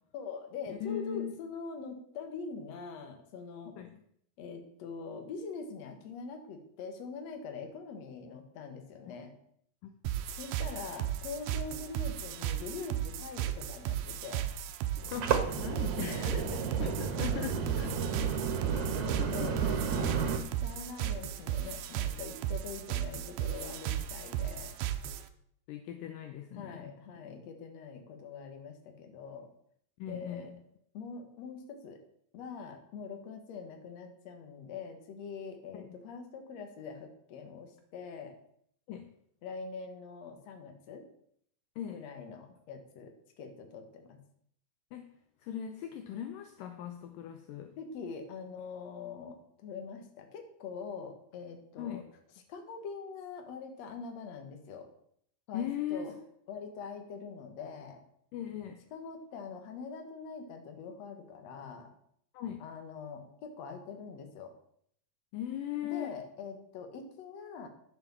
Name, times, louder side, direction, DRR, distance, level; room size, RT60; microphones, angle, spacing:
voice 1, 0.1-3.7 4.4-9.3 10.3-14.5 16.0-16.6 19.0-24.7 26.5-29.5 30.1-30.5 30.9-32.0 32.3-38.4 39.4-41.0 41.9-44.2 47.8-52.0 52.5-54.9 55.5-56.1 56.5-58.0 58.9-61.9 62.6-64.5 65.8-67.7, left 5 dB, 55° left, 5 dB, 2.3 m, -43 dB
voice 2, 0.7-1.4 3.8-3.9 9.1-9.2 9.8-9.9 15.1-15.3 15.6-16.3 16.8-18.4 18.7-19.5 25.7-27.0 30.0-30.6 35.7-35.9 38.9-39.1 41.8-42.0 44.9-45.1 45.4-47.7 51.8-52.1 55.5-56.2 58.3-58.8 62.3-62.6 65.3-66.2, left 10 dB, 75° left, 7 dB, 2.3 m, -39 dB
sound 1, 10.0-25.3, right 11 dB, 80° right, 2.4 m, -35 dB
sound 2, 15.0-20.4, right 6 dB, 60° right, 2.4 m, -32 dB
10.5 x 7.0 x 7.1 m, 0.68 s
omnidirectional pair, 4.2 m